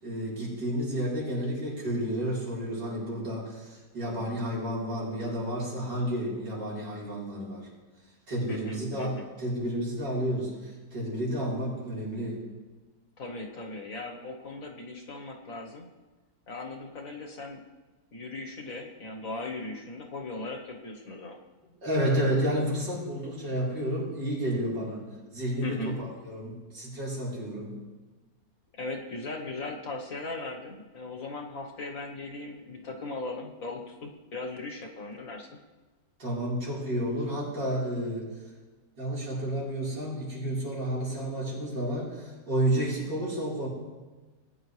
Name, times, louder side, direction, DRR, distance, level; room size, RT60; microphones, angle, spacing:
voice 1, 0.0-7.7 8.3-12.4 21.8-25.1 25.3-27.7 36.2-38.3 39.0-43.7, right 1 dB, 80° right, -6 dB, 4.6 m, -31 dB
voice 2, 8.5-9.3 13.2-15.9 16.5-17.6 18.1-21.4 25.6-25.9 28.7-35.5, left 2 dB, 55° left, 2 dB, 1.6 m, -38 dB
19.5 x 9.7 x 3.3 m, 1.3 s
omnidirectional pair, 1.9 m